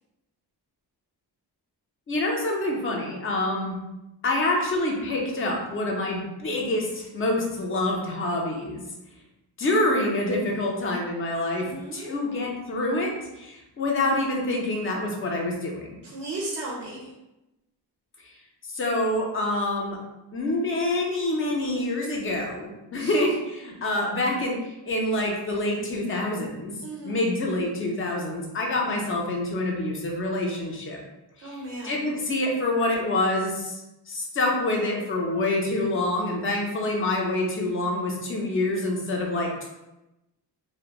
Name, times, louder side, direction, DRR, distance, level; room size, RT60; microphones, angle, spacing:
voice 1, 2.1-3.8 4.2-8.8 9.6-11.7 11.9-16.0 18.2-18.3 18.7-20.0 20.3-26.7 27.0-31.0 31.4-31.6 31.8-33.8 34.1-39.7, left 1 dB, 35° left, 0 dB, 0.4 m, -26 dB
voice 2, 11.6-12.2 16.0-17.1 22.9-23.3 26.8-27.2 31.4-32.1, right 2 dB, 35° right, -4 dB, 0.4 m, -36 dB
2.8 x 2.1 x 2.3 m, 0.95 s
wide cardioid pair, 175°, 41 cm